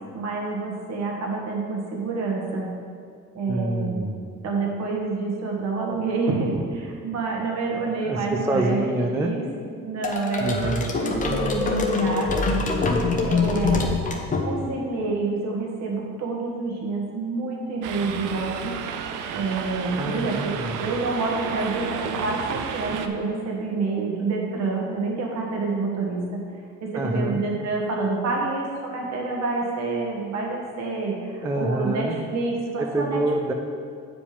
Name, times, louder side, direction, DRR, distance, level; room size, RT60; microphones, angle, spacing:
voice 1, 0.1-2.7 3.3-4.0 4.4-9.4 9.8-12.4 13.1-13.8 14.4-18.7 19.3-26.4 26.8-33.2, right 3 dB, 55° right, -1 dB, 1.7 m, -28 dB
voice 2, 3.5-4.3 8.0-9.3 10.4-10.9 20.0-20.8 26.9-27.4 31.4-32.2 32.8-33.5, right 2 dB, 10° right, 3 dB, 0.3 m, -26 dB
sound 1, 10.0-14.9, left 3 dB, 25° left, 0.8 m, -24 dB
sound 2, 17.8-23.1, right 7 dB, 80° right, 0.6 m, -32 dB
8.5 x 5.0 x 5.1 m, 2.2 s
cardioid pair, 150°, 31 cm